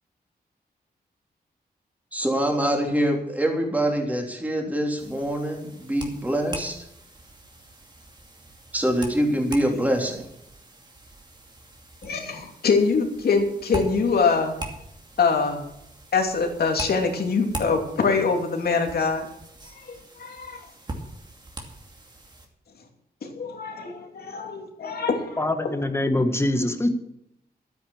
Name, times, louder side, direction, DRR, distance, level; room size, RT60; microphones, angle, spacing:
voice 1, 2.1-6.8 8.7-10.3, right 1 dB, 10° right, 1 dB, 3.3 m, -24 dB
sound 1, 5.0-22.5, right 2 dB, 25° right, 2.6 m, -41 dB
voice 2, 12.0-14.5 15.2-15.6 16.1-19.3 19.9-20.6 23.2-25.4, left 4 dB, 75° left, 3 dB, 2.8 m, -24 dB
voice 3, 25.4-26.9, left 1 dB, 15° left, 7 dB, 1.7 m, -23 dB
12.5 x 9.7 x 7.3 m, 0.78 s
wide cardioid pair, 125°, 16 cm